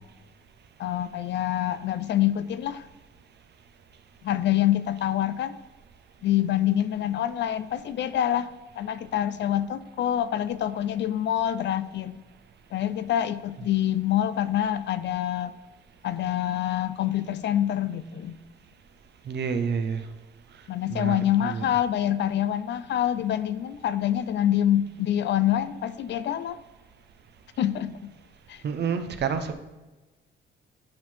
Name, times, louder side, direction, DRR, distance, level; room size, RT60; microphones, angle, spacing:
voice 1, 0.8-2.9 4.2-5.6 6.2-8.5 8.8-12.2 12.7-15.5 16.0-18.4 20.7-26.6 27.6-28.1 28.5-28.6, left 11 dB, 65° left, 14 dB, 0.5 m, -26 dB
voice 2, 19.3-20.1 20.9-21.1 21.4-21.6 28.6-29.5, right 6 dB, 60° right, 9 dB, 0.9 m, -28 dB
11.5 x 4.2 x 4.5 m, 1.1 s
cardioid pair, 90°, 20 cm